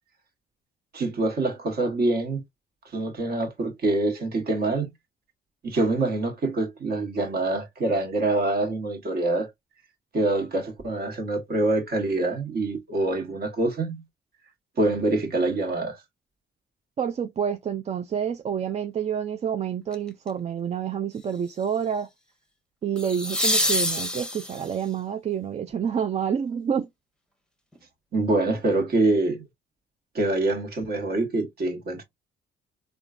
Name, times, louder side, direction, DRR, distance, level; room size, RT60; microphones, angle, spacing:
voice 1, 0.9-2.4 2.9-4.9 5.6-9.5 10.1-14.0 14.8-16.0 28.1-29.5 30.1-32.0, right 2 dB, 50° right, 1.2 m, -25 dB
voice 2, 17.0-22.1 22.8-26.9, right 8 dB, 35° right, 0.4 m, -28 dB
sound 1, 19.9-20.3 23.0-24.8 27.7-27.8, left 1 dB, 5° left, 0.8 m, -26 dB
3.6 x 2.3 x 2.4 m
cardioid pair, 90°, 20 cm